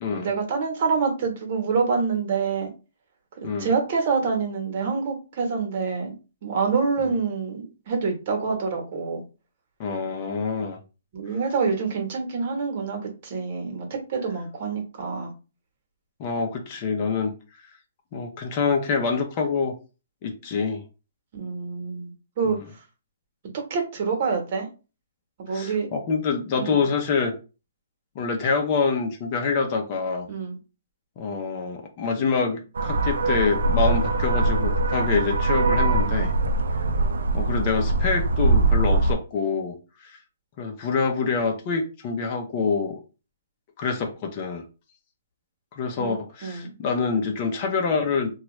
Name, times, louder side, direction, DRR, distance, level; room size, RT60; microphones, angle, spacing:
voice 1, 0.2-2.7 3.4-6.1 6.4-9.2 11.1-15.3 21.3-22.6 23.5-24.7 25.4-25.9 26.6-26.9 30.3-30.6 46.0-46.2 46.4-46.7, right 5 dB, 45° right, 3 dB, 1.1 m, -26 dB
voice 2, 9.8-10.8 16.2-17.3 18.1-19.7 20.2-20.8 22.5-22.6 25.5-27.3 28.1-30.3 31.2-36.3 37.3-39.8 40.0-40.2 40.6-43.0 43.8-44.6 45.7-48.3, left 5 dB, 35° left, 3 dB, 0.6 m, -26 dB
sound 1, 32.8-39.1, right 2 dB, 80° right, 0.4 m, -22 dB
3.0 x 2.3 x 3.1 m, 0.32 s
hypercardioid pair, 155°, 0 cm